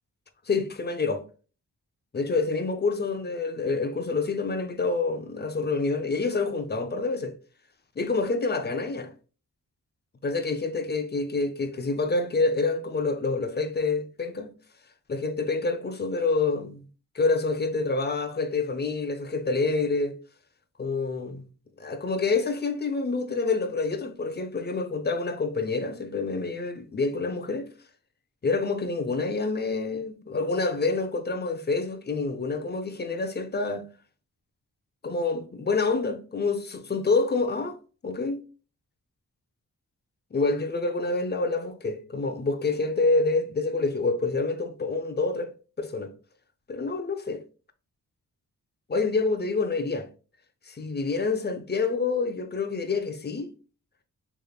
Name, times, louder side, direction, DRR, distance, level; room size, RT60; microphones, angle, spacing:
voice 1, 0.5-1.2 2.1-7.3 8.0-9.1 10.2-14.5 15.1-16.8 17.1-20.1 20.8-21.5 21.8-27.7 28.4-33.8 35.0-37.8 38.0-38.4 40.3-45.5 45.8-46.1 46.7-47.4 48.9-50.1 50.7-53.5, left 3 dB, 30° left, 0.6 m, -27 dB
3.6 x 3.3 x 2.3 m
cardioid pair, 45°, 34 cm